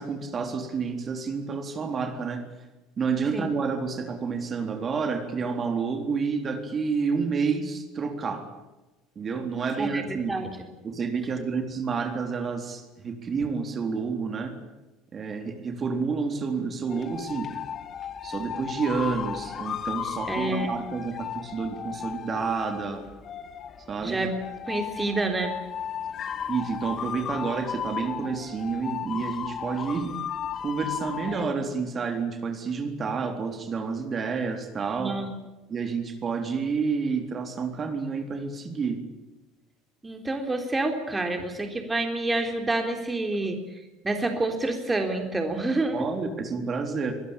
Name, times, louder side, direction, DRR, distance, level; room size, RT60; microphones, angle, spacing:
voice 1, 0.0-2.4 3.0-8.5 9.2-10.3 10.8-14.6 15.1-17.5 18.2-23.1 23.9-24.2 26.5-30.1 30.6-35.2 35.7-39.0 45.9-47.1, right 5 dB, 35° right, 5 dB, 3.8 m, -29 dB
voice 2, 9.8-10.5 20.3-20.8 24.0-24.3 24.7-25.5 35.0-35.3 40.0-43.6 44.0-46.0, right 2 dB, 15° right, 5 dB, 3.8 m, -28 dB
sound 1, 16.9-31.5, left 8 dB, 40° left, 1.8 m, -35 dB
24.0 x 20.5 x 9.0 m, 1.1 s
figure-of-eight pair, 65°, 0 cm